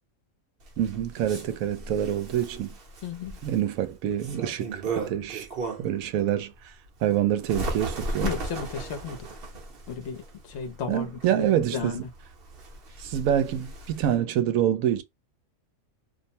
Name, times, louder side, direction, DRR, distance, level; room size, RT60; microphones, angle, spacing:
Bird, 0.6-6.0 6.5-14.2, right 3 dB, 50° right, 0.8 m, -36 dB
voice 1, 0.8-2.7 3.4-5.5 5.8-6.5 7.0-8.3 10.9-12.1 13.0-15.0, right 11 dB, 85° right, 1.0 m, -26 dB
voice 2, 3.0-3.4 8.2-9.2 9.9-10.2 10.5-12.0, left 6 dB, 60° left, 0.9 m, -34 dB
2.6 x 2.1 x 2.6 m
omnidirectional pair, 1.4 m